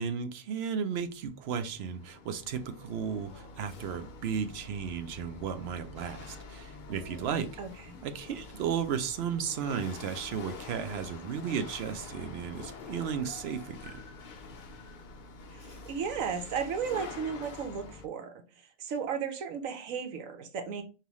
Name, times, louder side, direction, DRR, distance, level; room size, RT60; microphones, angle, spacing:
voice 1, 0.0-7.6 8.0-14.0, right 7 dB, 60° right, 0.8 m, -34 dB
Chatter / Hiss / Rattle, 1.2-18.1, left 4 dB, 55° left, 0.5 m, -47 dB
voice 2, 7.6-8.1 15.5-18.3 18.8-20.8, right 6 dB, 85° right, 1.2 m, -35 dB
5.3 x 2.8 x 3.0 m
omnidirectional pair, 1.4 m